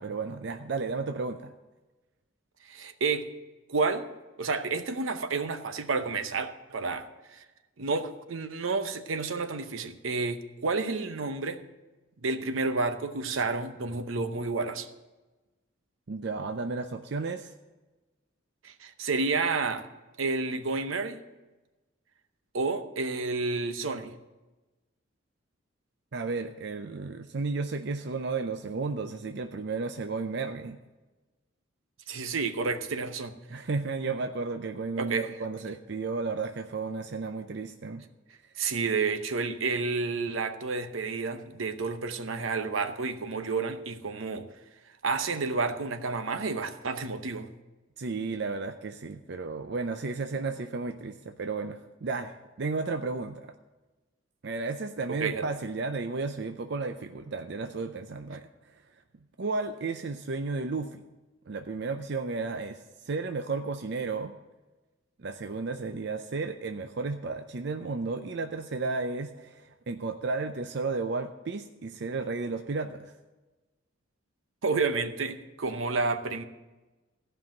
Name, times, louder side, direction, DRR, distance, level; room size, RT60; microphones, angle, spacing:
voice 1, 0.0-1.5 16.1-17.5 26.1-30.8 33.5-38.0 48.0-53.5 54.4-58.5 59.4-61.0 61.5-62.8 63.0-64.3 65.2-73.1, right 4 dB, 55° right, 7 dB, 0.5 m, -33 dB
voice 2, 2.7-3.3 3.7-4.1 4.4-7.4 7.8-11.6 12.2-14.9 18.6-19.9 20.2-21.2 22.5-24.1 32.1-33.4 35.0-35.3 38.6-44.5 45.0-47.5 55.1-55.5 74.6-76.4, right 4 dB, 80° right, 9 dB, 0.8 m, -30 dB
14.5 x 5.6 x 7.5 m, 1.1 s
head